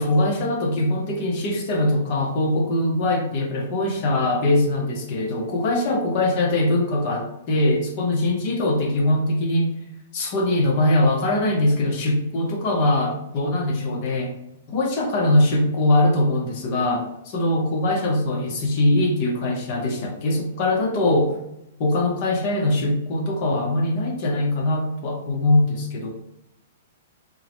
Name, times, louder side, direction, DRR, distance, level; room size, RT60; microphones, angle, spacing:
voice 1, 0.0-9.7 10.1-14.3 14.7-21.4 21.8-26.1, left 1 dB, 40° left, 2 dB, 0.7 m, -22 dB
3.6 x 2.0 x 2.9 m, 0.85 s
hypercardioid pair, 160°, 0 cm